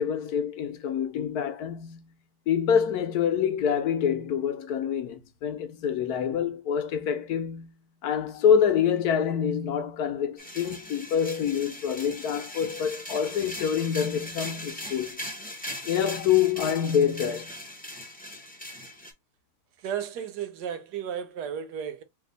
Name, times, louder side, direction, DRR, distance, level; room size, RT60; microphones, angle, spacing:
voice 1, 0.0-2.0 2.5-7.7 8.0-15.2 15.9-17.5, left 8 dB, 70° left, 1.2 m, -26 dB
sound 1, 10.4-19.1, left 1 dB, 10° left, 0.6 m, -39 dB
voice 2, 19.8-22.0, right 8 dB, 80° right, 1.2 m, -34 dB
3.3 x 2.7 x 3.9 m
omnidirectional pair, 1.7 m